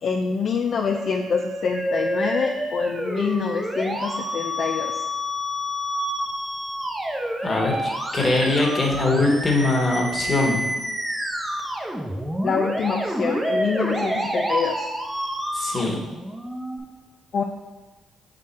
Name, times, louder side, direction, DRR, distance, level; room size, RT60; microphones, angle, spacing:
voice 1, 0.0-5.0 12.4-14.9 17.3-17.4, left 5 dB, 55° left, 3 dB, 0.4 m, -26 dB
Musical instrument, 0.9-16.8, equal, 10° right, 0.8 m, -28 dB
voice 2, 7.4-10.6 15.5-15.9, left 2 dB, 30° left, 0 dB, 1.4 m, -22 dB
6.1 x 3.8 x 4.2 m, 1.2 s
cardioid pair, 90°, 0 cm